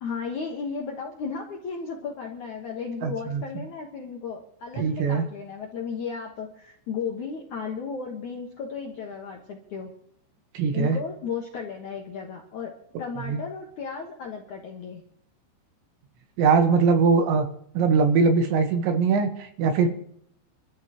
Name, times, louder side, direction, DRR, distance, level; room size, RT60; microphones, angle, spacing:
voice 1, 0.0-9.9 10.7-15.0, left 5 dB, 65° left, 0 dB, 2.0 m, -34 dB
voice 2, 3.0-3.6 4.8-5.3 10.6-11.0 13.3-13.4 16.4-17.5 17.8-19.9, right 5 dB, 70° right, 6 dB, 3.5 m, -21 dB
26.5 x 13.5 x 3.1 m, 0.68 s
omnidirectional pair, 5.6 m